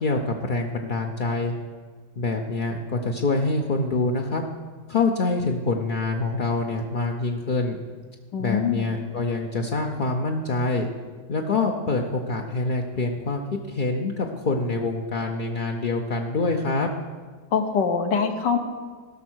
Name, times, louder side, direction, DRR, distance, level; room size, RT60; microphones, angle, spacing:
voice 1, 0.0-1.5 2.2-4.4 4.9-7.8 8.4-10.9 11.3-16.9, left 3 dB, 55° left, 1 dB, 0.5 m, -25 dB
voice 2, 8.3-8.9 17.5-18.6, left 6 dB, 85° left, 5 dB, 1.7 m, -23 dB
16.5 x 6.4 x 6.2 m, 1.5 s
omnidirectional pair, 1.8 m